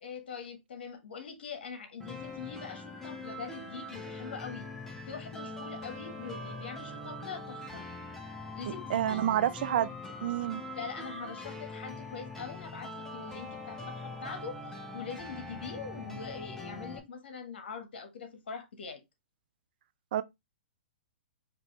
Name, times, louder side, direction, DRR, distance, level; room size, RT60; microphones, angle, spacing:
voice 1, 0.0-4.7 5.1-7.9 8.5-9.2 10.7-19.0, left 6 dB, 70° left, 1.2 m, -43 dB
sound 1, 2.0-17.0, left 2 dB, 5° left, 0.9 m, -42 dB
voice 2, 8.9-10.6 20.1-20.2, right 11 dB, 60° right, 0.4 m, -29 dB
5.1 x 2.6 x 3.0 m
hypercardioid pair, 130°, 6 cm